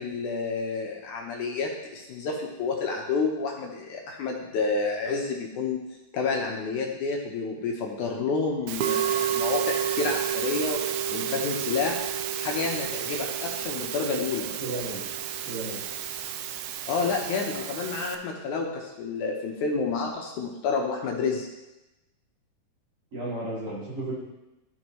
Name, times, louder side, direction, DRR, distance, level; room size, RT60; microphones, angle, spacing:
voice 1, 0.0-5.8 6.1-10.8 11.1-12.0 12.4-14.5 16.9-21.5, left 4 dB, 70° left, 0 dB, 2.2 m, -29 dB
Musical instrument, 8.7-18.2, right 10 dB, 80° right, 1.7 m, -30 dB
voice 2, 14.6-15.0 15.5-15.8 17.5-17.6 23.1-24.1, right 2 dB, 45° right, -9 dB, 3.7 m, -33 dB
14.0 x 5.3 x 3.1 m, 1.0 s
omnidirectional pair, 3.8 m